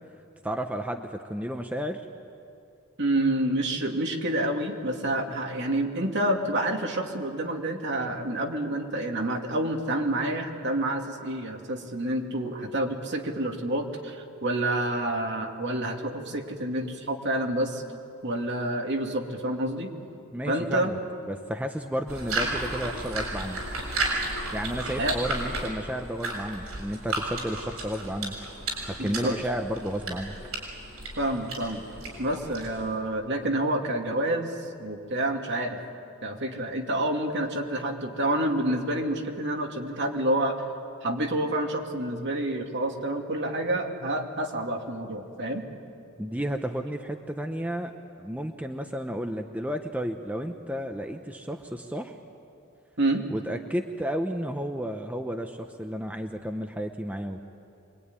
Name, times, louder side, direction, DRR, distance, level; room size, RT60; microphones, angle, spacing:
voice 1, 0.4-2.0 20.3-21.0 21.3-23.6 24.5-28.3 28.9-30.4 46.2-47.9 48.2-52.2 53.3-57.4, equal, 5° right, 5 dB, 0.9 m, -32 dB
voice 2, 3.0-17.8 18.2-19.9 20.5-20.9 25.0-25.1 29.0-29.3 31.2-31.8 32.2-35.8 36.2-40.6 41.0-45.6 53.0-53.2, right 1 dB, 55° right, 2 dB, 2.7 m, -28 dB
sound 1, 22.1-32.9, right 2 dB, 80° right, 7.2 m, -33 dB
25.5 x 23.0 x 9.7 m, 2.6 s
head